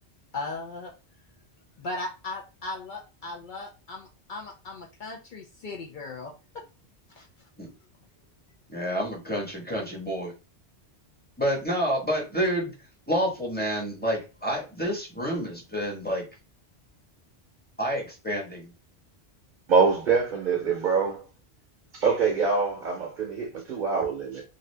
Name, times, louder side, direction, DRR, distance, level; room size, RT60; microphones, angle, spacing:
voice 1, 0.3-0.9 1.8-6.3 7.2-7.3, left 2 dB, 55° left, 0.6 m, -37 dB
voice 2, 8.7-10.3 11.4-12.7 13.1-16.2 17.8-18.7, equal, 10° left, 1.0 m, -28 dB
voice 3, 19.7-21.2 21.9-24.4, right 5 dB, 50° right, 0.8 m, -24 dB
2.6 x 2.4 x 3.3 m
omnidirectional pair, 1.1 m